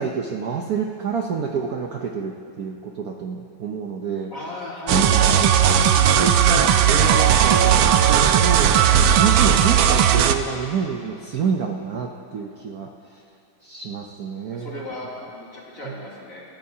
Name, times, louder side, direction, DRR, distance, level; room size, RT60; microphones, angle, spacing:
voice 1, 0.0-4.3 4.9-5.8 6.2-12.9 13.6-14.8 15.8-15.9, right 6 dB, 60° right, 1 dB, 1.0 m, -28 dB
voice 2, 4.3-5.3 5.8-6.1 14.5-16.4, left 2 dB, 40° left, -6 dB, 3.3 m, -36 dB
sound 1, 4.9-10.3, right 9 dB, 75° right, 1.4 m, -16 dB
28.5 x 14.0 x 2.8 m, 2.7 s
omnidirectional pair, 2.3 m